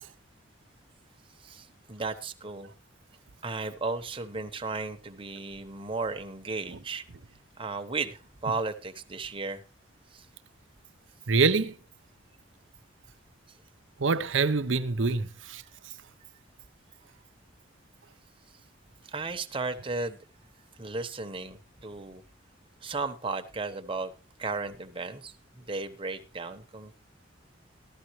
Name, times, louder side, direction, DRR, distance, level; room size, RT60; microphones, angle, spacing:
voice 1, 1.4-2.7 3.4-7.0 7.6-9.6 10.1-10.3 15.6-15.7 19.1-20.2 20.8-22.2 22.8-24.1 24.4-26.9, right 3 dB, 30° right, 1.0 m, -35 dB
voice 2, 11.3-11.7 14.0-15.6, right 4 dB, 75° right, 0.7 m, -25 dB
14.5 x 12.5 x 3.1 m
head